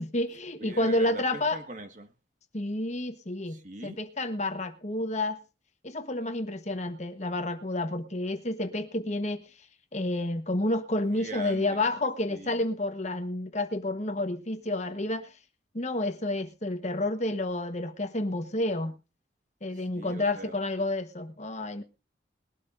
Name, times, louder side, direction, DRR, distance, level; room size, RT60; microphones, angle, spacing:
voice 1, 0.0-1.6 2.5-5.4 5.8-9.4 9.9-15.3 15.7-19.0 19.6-21.8, left 1 dB, 40° left, 1.1 m, -30 dB
voice 2, 0.6-2.1 3.4-4.0 11.1-11.9 12.3-12.7 19.7-20.6, right 1 dB, 40° right, 1.6 m, -42 dB
21.0 x 12.5 x 2.6 m
head